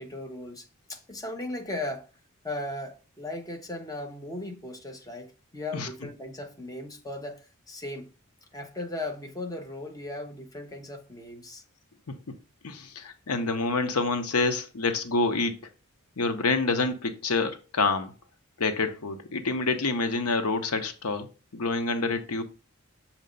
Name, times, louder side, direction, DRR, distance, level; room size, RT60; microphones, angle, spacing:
voice 1, 0.0-2.1 2.4-8.1 8.5-11.6, left 2 dB, 15° left, 0.9 m, -37 dB
voice 2, 5.7-6.1 12.6-15.6 16.2-18.1 18.6-21.3 21.5-22.4, left 3 dB, 85° left, 0.8 m, -27 dB
6.6 x 3.0 x 5.2 m
head